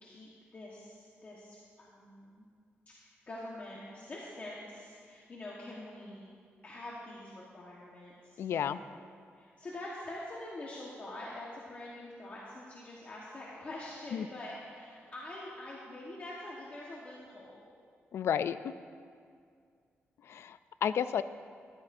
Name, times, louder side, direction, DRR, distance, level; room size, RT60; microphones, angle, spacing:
voice 1, 0.0-2.4 3.0-6.3 6.6-9.0 9.4-17.6, left 1 dB, 35° left, -5 dB, 1.3 m, -45 dB
voice 2, 8.4-8.8 14.1-14.3 18.1-18.7 20.2-21.2, left 8 dB, 70° left, 13 dB, 0.3 m, -32 dB
14.0 x 12.5 x 2.6 m, 2.2 s
wide cardioid pair, 135°, 4 cm